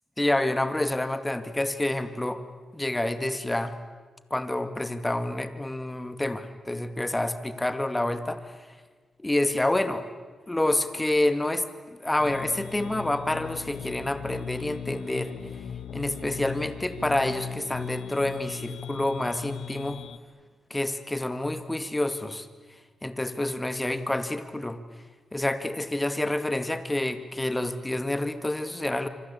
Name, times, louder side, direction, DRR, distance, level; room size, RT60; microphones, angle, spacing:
voice 1, 0.2-2.4 2.7-3.7 4.3-8.5 9.2-10.0 10.5-15.3 15.9-20.0 20.7-22.5 23.0-24.8 25.3-29.1, left 1 dB, 15° left, 10 dB, 2.3 m, -28 dB
sound 1, 12.2-20.2, left 9 dB, 85° left, 1.1 m, -39 dB
26.5 x 25.5 x 8.6 m, 1.4 s
cardioid pair, 80°, 0 cm